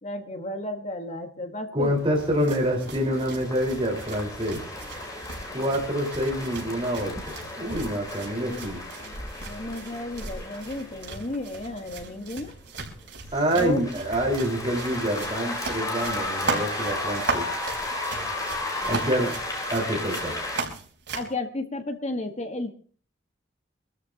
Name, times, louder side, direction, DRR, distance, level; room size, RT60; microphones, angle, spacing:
voice 1, 0.0-2.0 8.5-8.7 9.4-12.6 13.5-13.8 18.8-19.3 21.1-22.7, left 2 dB, 35° left, 6 dB, 1.4 m, -33 dB
voice 2, 1.7-4.6 5.5-8.8 13.3-17.4 18.9-19.3 19.7-20.4, equal, 30° right, -2 dB, 4.3 m, -27 dB
sound 1, 1.8-20.6, left 2 dB, 20° left, 3.9 m, -34 dB
sound 2, 2.2-21.3, right 4 dB, 85° right, 4.6 m, -38 dB
25.5 x 13.5 x 2.8 m, 0.43 s
head